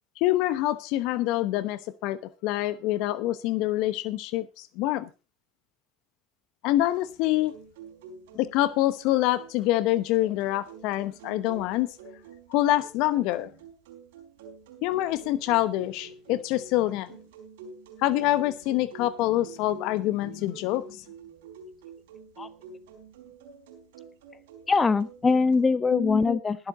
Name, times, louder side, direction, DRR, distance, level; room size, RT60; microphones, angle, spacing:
voice 1, 0.2-5.1 6.6-7.5 8.3-11.9 12.5-13.5 14.8-17.2 18.0-21.0 25.9-26.4, left 15 dB, 65° left, 15 dB, 1.0 m, -26 dB
sound 1, 6.9-25.6, right 5 dB, 80° right, 4.4 m, -48 dB
voice 2, 24.7-26.6, left 4 dB, 25° left, 14 dB, 1.1 m, -22 dB
20.0 x 8.1 x 4.0 m, 0.30 s
hypercardioid pair, 80°, 0 cm